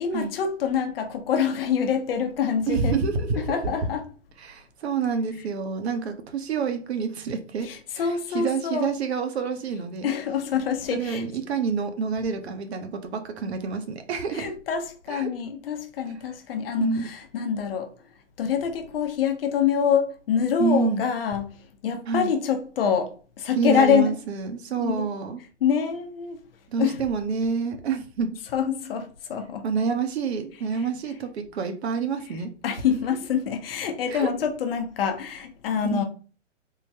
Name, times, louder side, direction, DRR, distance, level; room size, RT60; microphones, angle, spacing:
voice 1, 0.0-3.0 3.4-4.1 7.6-8.9 10.0-11.2 14.3-17.9 18.4-21.5 21.8-23.1 23.4-24.2 24.8-25.1 25.6-26.4 26.8-27.0 28.5-29.6 30.7-30.8 32.6-36.0, left 7 dB, 50° left, 0.7 m, -25 dB
voice 2, 2.7-3.7 4.4-7.7 8.0-10.1 10.9-14.5 15.1-15.3 16.8-17.1 20.6-21.1 22.1-22.3 23.6-25.4 26.7-28.4 29.6-32.5 34.1-34.3 35.9-36.0, right 5 dB, 60° right, 0.7 m, -27 dB
3.7 x 2.1 x 2.8 m
hypercardioid pair, 130°, 37 cm